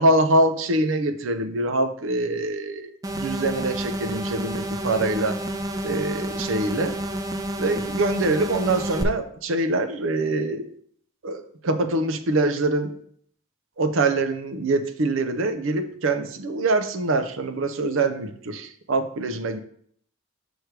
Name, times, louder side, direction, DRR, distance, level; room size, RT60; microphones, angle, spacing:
voice 1, 0.0-5.4 5.8-7.0 7.6-10.7 11.2-12.9 13.8-19.6, right 2 dB, 70° right, 8 dB, 0.6 m, -24 dB
sound 1, 3.0-9.0, right 1 dB, 20° right, 0.4 m, -29 dB
6.3 x 3.3 x 4.7 m, 0.63 s
head